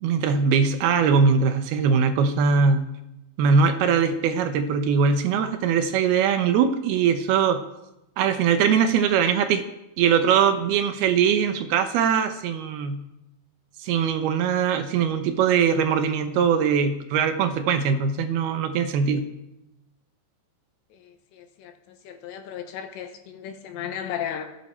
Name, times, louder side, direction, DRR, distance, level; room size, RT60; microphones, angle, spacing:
voice 1, 0.0-2.9 3.4-7.6 8.2-9.6 10.0-13.0 13.8-19.3, right 6 dB, 75° right, 8 dB, 2.5 m, -21 dB
voice 2, 20.9-24.5, left 9 dB, 80° left, 5 dB, 3.6 m, -35 dB
18.0 x 15.0 x 4.4 m, 0.91 s
omnidirectional pair, 5.1 m